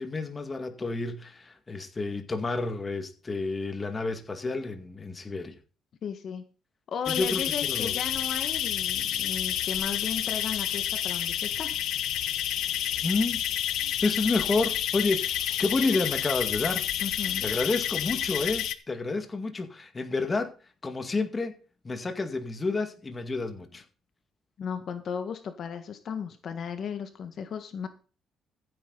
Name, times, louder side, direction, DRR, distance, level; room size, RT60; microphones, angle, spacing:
voice 1, 0.0-5.6 7.1-8.0 13.0-13.4 14.0-16.8 17.4-20.5 20.8-21.6 21.8-23.8, left 3 dB, 25° left, 2.1 m, -30 dB
voice 2, 6.0-6.4 6.9-11.7 17.0-17.4 24.6-27.9, left 7 dB, 55° left, 1.6 m, -35 dB
sound 1, 7.1-18.7, left 11 dB, 80° left, 1.1 m, -29 dB
15.0 x 9.0 x 4.1 m
cardioid pair, 115°, 0 cm